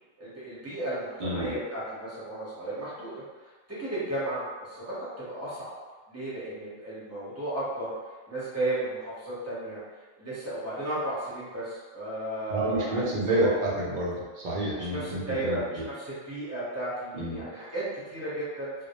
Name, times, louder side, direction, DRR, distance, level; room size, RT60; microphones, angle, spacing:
voice 1, 0.2-5.7 6.1-7.9 8.3-9.8 10.2-13.5 14.7-18.7, right 1 dB, 15° right, -10 dB, 0.6 m, -34 dB
voice 2, 1.2-1.5 12.5-15.6 17.1-17.4, right 1 dB, 60° right, -5 dB, 0.5 m, -29 dB
2.1 x 2.0 x 2.8 m, 1.4 s
omnidirectional pair, 1.3 m